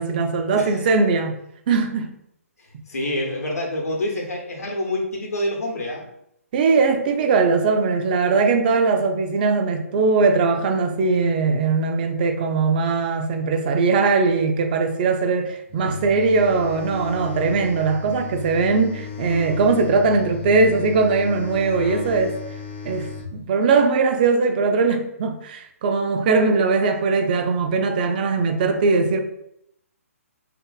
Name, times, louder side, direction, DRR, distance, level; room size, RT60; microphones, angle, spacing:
voice 1, 0.0-1.4 1.7-2.1 6.5-22.4 22.8-29.2, right 4 dB, 35° right, 0.3 m, -20 dB
voice 2, 0.6-0.9 2.9-6.0, left 1 dB, 85° left, 0.8 m, -27 dB
sound 1, 15.7-23.3, left 6 dB, 45° left, 0.4 m, -35 dB
2.6 x 2.5 x 2.3 m
figure-of-eight pair, 135°, 8 cm